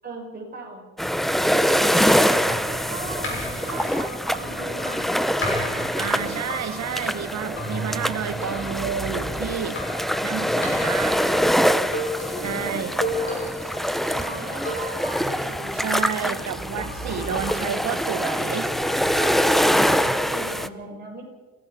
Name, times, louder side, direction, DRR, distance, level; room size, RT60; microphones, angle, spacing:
voice 1, 0.0-0.9 1.4-2.1 2.5-5.1 5.4-6.6 7.4-8.7 11.0-13.7 14.0-15.9 16.3-16.9 17.4-18.1 20.0-21.3, right 3 dB, 25° right, 5.6 m, -38 dB
sound 1, 1.0-20.7, equal, ahead, 0.6 m, -24 dB
sound 2, 2.1-20.1, left 1 dB, 35° left, 6.9 m, -35 dB
voice 2, 6.0-9.8 10.2-11.2 12.4-12.9 15.7-18.8, right 8 dB, 50° right, 1.2 m, -30 dB
28.5 x 17.0 x 6.0 m
cardioid pair, 165°, 34 cm